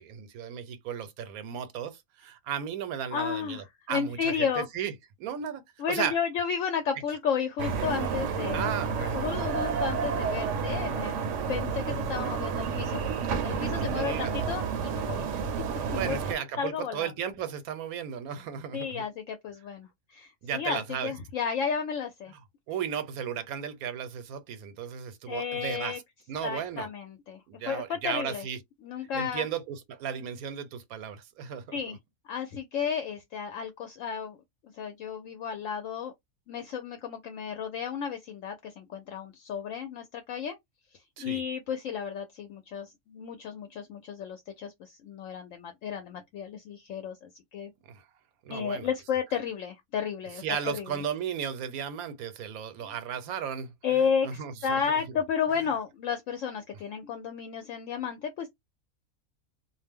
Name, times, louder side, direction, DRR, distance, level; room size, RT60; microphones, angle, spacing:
voice 1, 0.0-4.9 5.2-6.2 8.5-9.2 13.7-14.3 15.9-19.0 20.4-21.1 22.7-26.0 26.3-26.9 27.5-28.6 29.1-31.8 41.2-41.4 47.8-48.0 48.4-48.9 50.4-53.7 54.0-54.8, right 8 dB, 90° right, 1.1 m, -35 dB
voice 2, 3.1-4.7 5.8-13.0 13.4-15.3 15.9-17.1 18.7-22.3 25.3-26.0 26.4-28.5 28.8-29.5 31.7-32.0 32.3-34.4 34.8-36.1 36.5-40.5 41.2-47.7 48.5-51.0 53.8-58.5, left 7 dB, 70° left, 0.9 m, -33 dB
sound 1, 7.6-16.3, right 6 dB, 65° right, 0.9 m, -30 dB
2.5 x 2.0 x 3.4 m
omnidirectional pair, 1.5 m